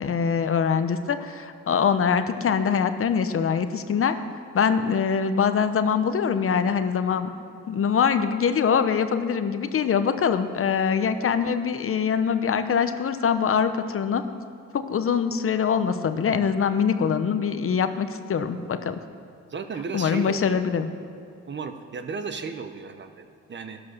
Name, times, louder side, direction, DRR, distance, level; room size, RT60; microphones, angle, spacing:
voice 1, 0.0-4.2 4.5-7.3 7.7-14.2 14.7-19.0 19.9-20.9, left 6 dB, 45° left, 10 dB, 0.8 m, -23 dB
voice 2, 19.5-20.6 21.4-23.8, right 5 dB, 40° right, 8 dB, 1.0 m, -34 dB
12.0 x 11.0 x 6.6 m, 2.4 s
cardioid pair, 90°, 30 cm